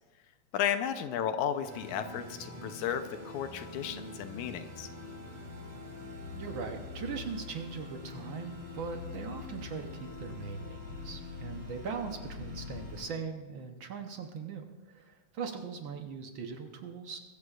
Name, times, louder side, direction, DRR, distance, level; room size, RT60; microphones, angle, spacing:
voice 1, 0.5-4.9, left 9 dB, 85° left, 9 dB, 2.2 m, -33 dB
sound 1, 1.6-13.1, left 3 dB, 45° right, 3.2 m, -44 dB
voice 2, 6.3-17.2, right 5 dB, 75° right, 5 dB, 1.1 m, -40 dB
23.0 x 14.0 x 2.4 m, 1.3 s
omnidirectional pair, 3.4 m